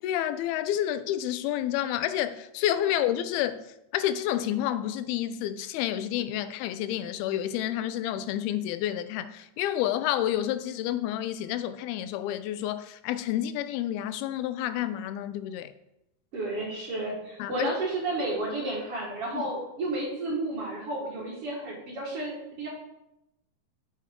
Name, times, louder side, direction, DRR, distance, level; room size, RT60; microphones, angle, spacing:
voice 1, 0.0-15.7 17.4-17.7 19.3-19.4, left 12 dB, 85° left, 2.5 m, -29 dB
voice 2, 16.3-22.7, right 2 dB, 50° right, 2.1 m, -32 dB
8.9 x 6.8 x 3.7 m
omnidirectional pair, 4.3 m